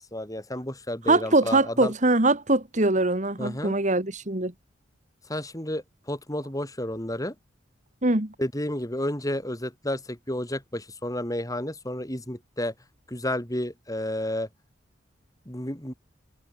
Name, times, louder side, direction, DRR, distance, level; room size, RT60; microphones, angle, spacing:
voice 1, 0.1-1.9 3.4-3.7 5.3-7.3 8.4-12.7 13.1-14.5 15.4-15.9, left 1 dB, 20° left, 5.0 m, -31 dB
voice 2, 1.1-4.5 8.0-8.3, right 2 dB, 40° right, 2.4 m, -22 dB
head